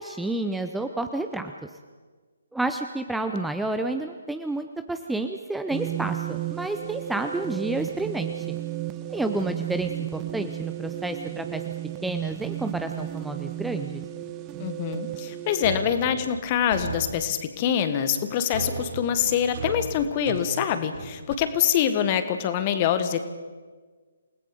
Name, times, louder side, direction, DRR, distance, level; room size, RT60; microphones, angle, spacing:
voice 1, 0.0-1.7 2.5-8.6 9.1-11.6 12.0-14.0, right 2 dB, 5° right, 6 dB, 0.7 m, -30 dB
sound 1, 5.7-15.8, right 15 dB, 20° right, 1.1 m, -34 dB
voice 2, 14.6-23.3, left 9 dB, 30° left, 10 dB, 1.6 m, -25 dB
sound 2, 15.6-17.2 18.5-21.3, right 4 dB, 45° right, 6.4 m, -35 dB
28.5 x 19.0 x 5.2 m, 1.5 s
figure-of-eight pair, 140°, 0 cm